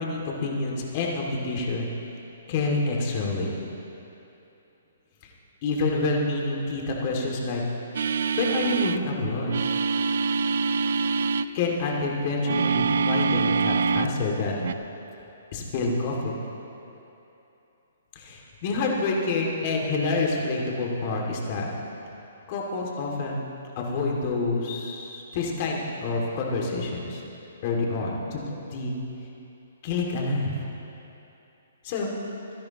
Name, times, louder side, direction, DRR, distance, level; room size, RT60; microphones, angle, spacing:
voice 1, 0.0-2.0 2.5-3.5 5.2-5.3 5.6-7.6 8.4-9.5 11.5-14.7 15.5-16.4 18.1-21.7 22.5-23.4 23.8-27.2 27.6-28.4 28.7-28.9 29.8-30.7 31.8-32.1, left 3 dB, 40° left, -1 dB, 2.3 m, -27 dB
sound 1, 7.9-9.0 9.4-11.5 12.4-14.2 14.6-14.7, right 5 dB, 70° right, 0.4 m, -25 dB
26.5 x 10.5 x 3.0 m, 2.9 s
hypercardioid pair, 145°, 0 cm